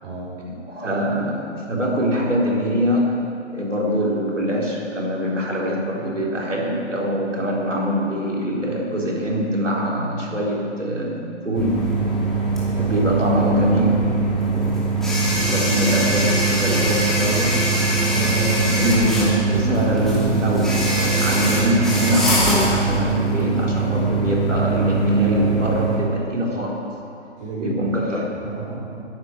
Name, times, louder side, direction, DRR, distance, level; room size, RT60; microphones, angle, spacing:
voice 1, 0.4-3.2 3.5-11.8 12.7-14.0 15.5-17.6 18.1-26.9 27.6-28.3, equal, 80° right, -3 dB, 3.9 m, -23 dB
sound 1, 11.5-26.0, right 3 dB, ahead, 2.7 m, -21 dB
voice 2, 12.6-12.9 14.0-14.8 27.4-28.0 28.3-29.0, right 2 dB, 35° right, -5 dB, 4.2 m, -34 dB
10.5 x 10.5 x 7.9 m, 2.5 s
figure-of-eight pair, 135°, 37 cm